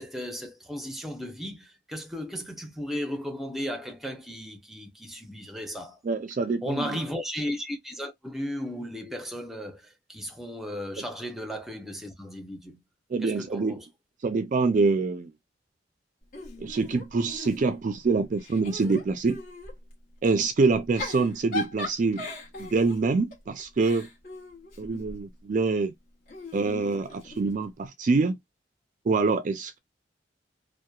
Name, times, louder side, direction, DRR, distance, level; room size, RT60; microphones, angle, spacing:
voice 1, 0.0-6.0 6.6-12.8 13.2-13.9, equal, ahead, 0.6 m, -35 dB
voice 2, 6.0-7.0 11.0-11.1 13.1-13.8 14.2-15.3 16.6-19.4 20.2-22.3 22.6-24.1 24.8-25.9 26.5-28.4 29.0-29.8, right 4 dB, 45° right, 0.4 m, -25 dB
Giggle / Chuckle chortle, 16.3-18.0 18.4-19.8 20.7-25.2 26.3-27.7, left 2 dB, 50° left, 1.2 m, -39 dB
2.8 x 2.2 x 2.3 m
head